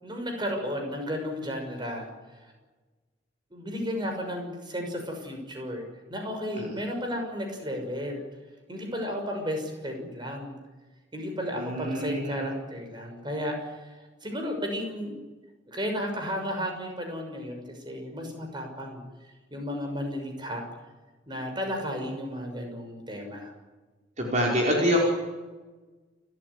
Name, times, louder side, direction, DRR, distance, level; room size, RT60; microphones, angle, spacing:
voice 1, 0.0-2.1 2.4-2.5 3.5-5.8 6.1-8.2 8.7-10.6 11.1-15.2 15.7-19.0 19.5-20.6 21.3-23.5, equal, 25° right, 3 dB, 6.3 m, -33 dB
voice 2, 11.6-12.5 24.2-25.0, equal, 40° right, -2 dB, 5.1 m, -26 dB
29.5 x 14.5 x 9.9 m, 1.3 s
head